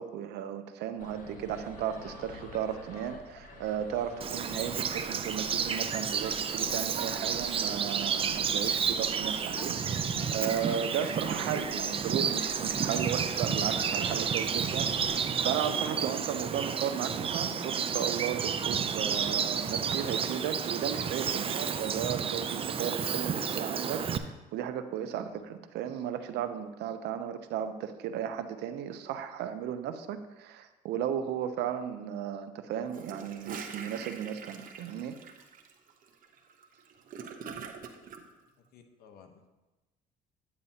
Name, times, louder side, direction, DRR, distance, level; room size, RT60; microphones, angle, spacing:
voice 1, 0.0-35.2, right 9 dB, 80° right, 9 dB, 0.7 m, -35 dB
sound 1, 1.0-15.2, left 3 dB, 50° left, 1.5 m, -48 dB
Bird vocalization bird call bird song, 4.2-24.2, right 7 dB, 35° right, 0.5 m, -31 dB
Gurgling / Toilet flush, 32.8-38.2, right 6 dB, 55° right, 0.9 m, -44 dB
voice 2, 38.6-39.5, left 6 dB, 70° left, 5 dB, 1.0 m, -56 dB
9.6 x 8.7 x 2.8 m, 1.1 s
cardioid pair, 110°, 17 cm